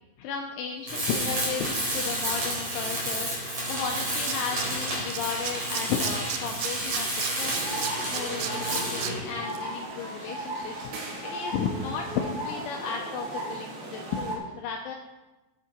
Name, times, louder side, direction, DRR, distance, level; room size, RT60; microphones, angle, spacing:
voice 1, 0.2-15.0, left 6 dB, 80° left, 0 dB, 3.1 m, -34 dB
Tools, 0.9-9.2, right 1 dB, 35° right, 5.2 m, -30 dB
Tools 2, 3.7-3.8 4.0-5.2 5.4-9.1 9.5-9.6, right 12 dB, 90° right, 2.6 m, -32 dB
sound 1, 7.4-14.4, right 1 dB, 60° right, 4.2 m, -36 dB
13.5 x 9.6 x 4.5 m, 1.1 s
omnidirectional pair, 6.0 m